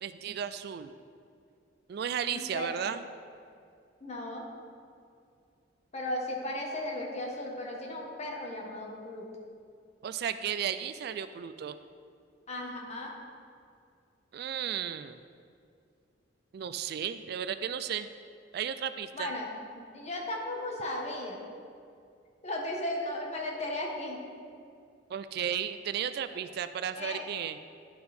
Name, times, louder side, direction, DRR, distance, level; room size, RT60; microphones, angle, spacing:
voice 1, 0.0-0.9 1.9-3.0 10.0-11.8 14.3-15.2 16.5-18.1 18.5-19.3 25.1-27.6, right 8 dB, 60° right, 12 dB, 0.3 m, -34 dB
voice 2, 2.3-2.9 4.0-4.4 5.9-9.3 12.5-13.1 19.1-19.5 19.7-21.4 22.4-24.2 26.3-26.4 27.0-27.2, left 1 dB, 35° left, -1 dB, 1.5 m, -36 dB
11.0 x 5.6 x 4.3 m, 2.3 s
head